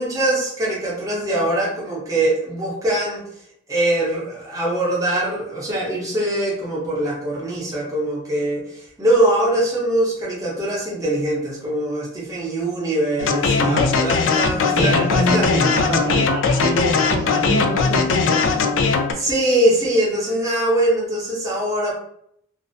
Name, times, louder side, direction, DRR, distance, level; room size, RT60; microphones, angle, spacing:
voice 1, 0.0-3.2 3.7-15.5 19.1-21.9, right 1 dB, 20° right, -5 dB, 0.7 m, -22 dB
sound 1, 13.2-19.1, left 4 dB, 90° left, 0.3 m, -19 dB
voice 2, 13.6-14.0 14.7-18.7, right 1 dB, 75° right, -4 dB, 0.4 m, -25 dB
2.5 x 2.1 x 2.5 m, 0.71 s
head